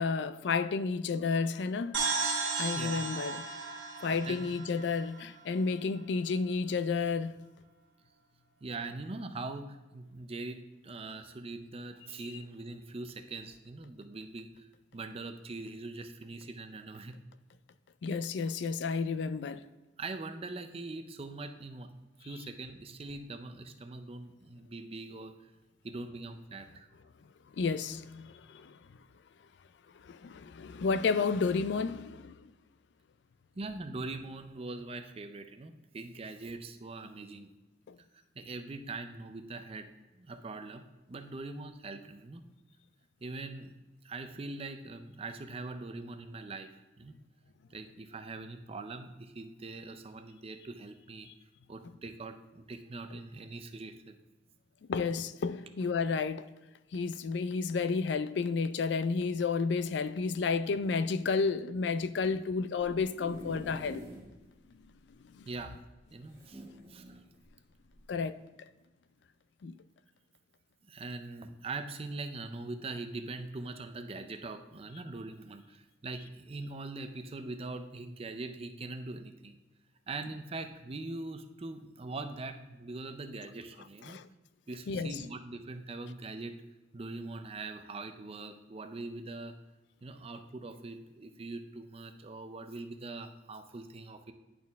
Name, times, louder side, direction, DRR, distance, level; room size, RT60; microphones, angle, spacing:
voice 1, 0.0-2.1 2.6-3.4 4.0-7.4 18.0-19.6 27.6-28.8 30.0-32.4 37.9-38.0 54.9-56.5 56.9-64.0 65.3-65.5 68.1-68.4 69.6-69.7 84.0-84.3 84.9-85.2, left 4 dB, 70° left, 0.4 m, -31 dB
sound 1, 1.9-5.6, right 4 dB, 90° right, 1.6 m, -34 dB
voice 2, 8.6-14.7 14.9-17.1 20.0-21.9 22.2-25.5 25.8-26.9 33.6-37.5 38.4-39.9 40.1-40.8 41.1-42.5 43.2-43.7 44.0-47.2 47.7-51.3 51.7-54.2 65.5-65.8 66.1-66.6 66.9-67.2 70.9-79.6 80.1-84.2 84.7-86.6 86.9-89.6 90.0-94.3, right 3 dB, 35° right, 0.5 m, -42 dB
sound 2, 62.9-64.3 64.8-64.9 65.1-65.2 66.3-67.2 67.9-68.1, equal, 15° right, 1.5 m, -47 dB
10.5 x 4.4 x 3.5 m
head